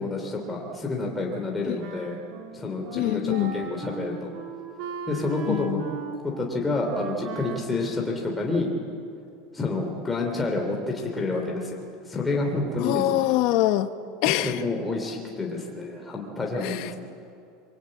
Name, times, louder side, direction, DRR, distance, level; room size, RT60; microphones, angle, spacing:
voice 1, 0.0-2.2 2.5-4.3 5.1-5.8 6.1-8.7 9.5-13.0 14.2-17.0, left 3 dB, 10° left, 0 dB, 2.9 m, -29 dB
Wind instrument woodwind instrument, 1.3-8.8, right 5 dB, 45° right, 3.0 m, -39 dB
voice 2, 2.9-3.5 5.5-5.8 12.8-13.9 14.2-14.6 16.6-16.9, left 15 dB, 50° left, 11 dB, 1.2 m, -24 dB
25.5 x 23.5 x 8.6 m, 2.6 s
supercardioid pair, 175°, 0 cm